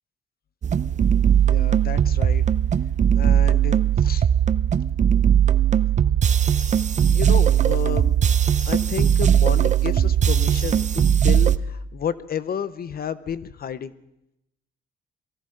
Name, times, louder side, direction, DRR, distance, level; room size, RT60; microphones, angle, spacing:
sound 1, 0.6-11.6, right 9 dB, 35° right, 0.6 m, -19 dB
voice 1, 1.5-2.4 3.1-4.3 7.1-8.1 8.6-13.9, left 8 dB, 50° left, 14 dB, 0.7 m, -31 dB
23.0 x 16.0 x 3.8 m, 0.84 s
cardioid pair, 90°, 20 cm